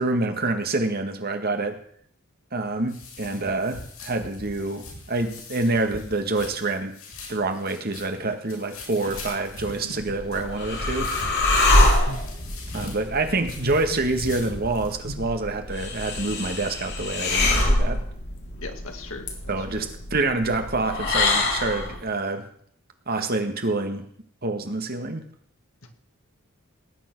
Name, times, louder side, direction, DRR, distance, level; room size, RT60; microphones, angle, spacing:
voice 1, 0.0-1.8 2.5-7.0 7.3-11.1 12.7-18.0 19.5-22.4 23.1-24.1 24.4-25.2, right 2 dB, 45° right, 6 dB, 1.8 m, -27 dB
sound 1, 2.6-14.9, left 2 dB, 90° left, 7.8 m, -41 dB
sound 2, 9.1-15.2, right 1 dB, 75° right, 2.2 m, -41 dB
sound 3, 9.9-22.0, left 2 dB, 55° left, 3.7 m, -25 dB
voice 2, 11.5-12.2 18.6-19.9, left 3 dB, 70° left, 5 dB, 2.2 m, -40 dB
19.0 x 9.3 x 6.1 m, 0.62 s
head